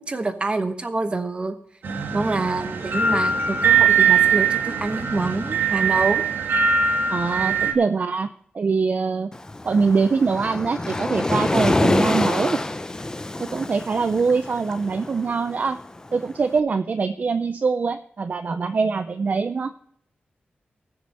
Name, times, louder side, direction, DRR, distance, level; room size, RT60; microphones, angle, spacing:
voice 1, 0.0-1.6 2.1-6.2 7.8-7.9, right 3 dB, 30° right, 8 dB, 1.2 m, -26 dB
sound 1, 1.8-7.7, right 6 dB, 90° right, 1.7 m, -21 dB
voice 2, 7.1-8.3 8.5-9.3 9.6-12.6 13.4-15.8 16.1-19.7, right 4 dB, 50° right, 9 dB, 0.5 m, -23 dB
Waves surf, 9.3-16.4, left 2 dB, 20° left, 0.6 m, -26 dB
19.5 x 6.9 x 4.3 m, 0.65 s
wide cardioid pair, 140°, 4 cm